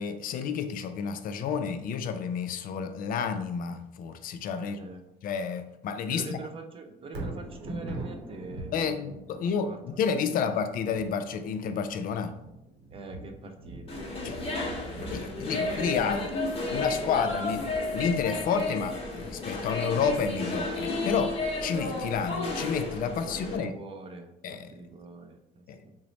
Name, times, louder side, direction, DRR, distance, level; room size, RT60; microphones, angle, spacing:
voice 1, 0.0-4.8 5.2-6.4 8.7-12.3 14.2-14.4 15.1-16.3 16.7-17.7 17.9-23.8 24.4-24.7 25.7-25.8, left 6 dB, 55° left, 9 dB, 0.4 m, -30 dB
voice 2, 4.6-5.0 6.1-10.7 12.9-14.0 14.5-15.2 23.1-26.0, right 3 dB, 35° right, 6 dB, 0.5 m, -45 dB
Thunder, 7.0-21.2 21.7-21.8, right 1 dB, 85° right, 0.8 m, -44 dB
sound 1, 13.9-23.6, left 2 dB, 35° left, 0.8 m, -32 dB
3.0 x 2.0 x 3.8 m, 0.88 s
cardioid pair, 110°, 17 cm